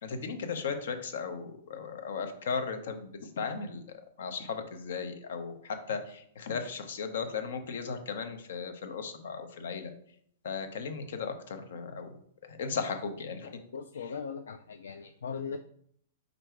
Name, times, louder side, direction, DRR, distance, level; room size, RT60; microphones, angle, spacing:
voice 1, 0.0-3.8 4.2-9.9 10.4-12.2 12.5-13.5, left 5 dB, 70° left, 7 dB, 0.7 m, -36 dB
voice 2, 13.7-15.6, left 6 dB, 85° left, 6 dB, 0.3 m, -39 dB
4.5 x 2.6 x 4.4 m, 0.65 s
hypercardioid pair, 135°, 0 cm